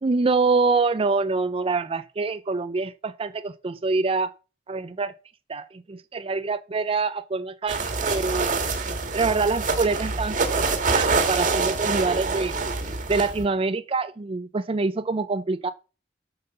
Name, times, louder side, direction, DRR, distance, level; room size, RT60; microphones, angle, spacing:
voice 1, 0.0-4.3 4.7-5.1 5.5-8.6 9.1-12.6 13.1-15.7, right 3 dB, 30° right, 0.4 m, -25 dB
sound 1, 7.7-13.4, right 4 dB, 50° right, 1.6 m, -25 dB
9.3 x 5.5 x 6.8 m
head